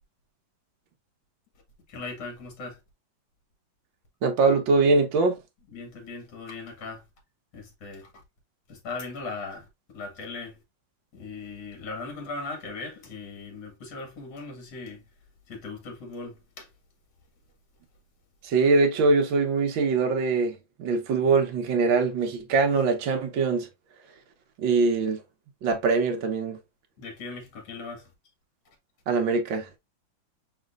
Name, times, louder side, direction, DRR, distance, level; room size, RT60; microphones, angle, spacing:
voice 1, 1.9-2.8 5.7-7.0 7.5-8.1 8.7-9.7 9.9-10.6 11.1-15.0 15.5-16.7 27.0-28.1, left 3 dB, 65° left, 2.3 m, -38 dB
voice 2, 4.2-5.4 18.4-23.7 24.6-25.2 25.6-26.6 29.1-29.8, right 4 dB, 70° right, 1.6 m, -23 dB
5.1 x 4.2 x 2.4 m
omnidirectional pair, 2.2 m